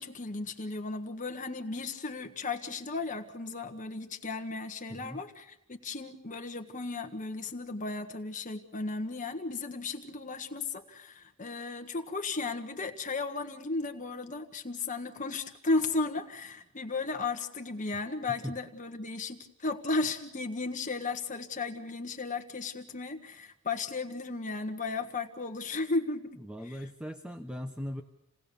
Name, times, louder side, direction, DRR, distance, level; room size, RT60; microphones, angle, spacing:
voice 1, 0.0-26.8, left 3 dB, 35° left, 5 dB, 1.5 m, -35 dB
voice 2, 4.9-5.2 18.3-18.6 26.4-28.0, equal, 5° right, 5 dB, 1.0 m, -39 dB
29.0 x 18.0 x 7.0 m, 0.86 s
head